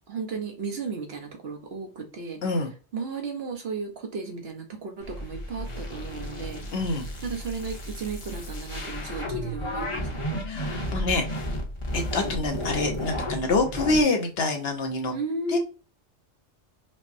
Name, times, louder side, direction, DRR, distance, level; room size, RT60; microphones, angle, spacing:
voice 1, 0.1-2.4 2.9-6.6 7.2-10.2 15.1-15.6, right 4 dB, 60° right, 2 dB, 1.0 m, -34 dB
sound 1, 5.0-14.0, equal, 30° left, 0.7 m, -33 dB
voice 2, 6.7-7.1 10.5-11.2 11.9-15.1 15.5-15.6, left 2 dB, 60° left, 3 dB, 0.9 m, -26 dB
5.1 x 2.1 x 2.6 m, 0.35 s
omnidirectional pair, 1.2 m